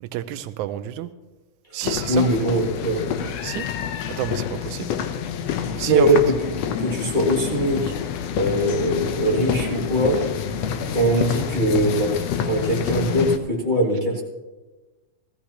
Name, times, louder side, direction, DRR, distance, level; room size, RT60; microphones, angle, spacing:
voice 1, 0.0-1.1 1.7-2.3 3.4-3.7 4.1-4.9 5.8-6.1, right 13 dB, 85° right, 12 dB, 2.0 m, -29 dB
voice 2, 1.7-3.3 5.5-7.9 8.3-10.3 10.9-14.2, right 1 dB, 20° left, -5 dB, 1.6 m, -22 dB
sound 1, 1.8-13.4, left 8 dB, 75° left, 1.7 m, -28 dB
18.0 x 14.5 x 2.9 m, 1.2 s
omnidirectional pair, 3.3 m